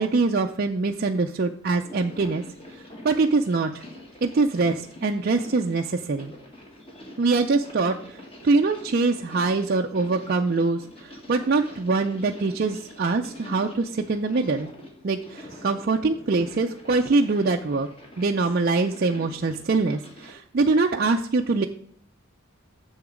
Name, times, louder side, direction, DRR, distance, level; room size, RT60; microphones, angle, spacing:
voice 1, 0.0-2.4 3.0-3.8 4.2-6.3 7.2-14.7 15.0-17.9 18.2-21.7, right 3 dB, 45° right, 3 dB, 0.4 m, -24 dB
sound 1, 1.8-20.4, left 1 dB, 25° left, 1.5 m, -45 dB
7.1 x 6.8 x 4.9 m, 0.64 s
head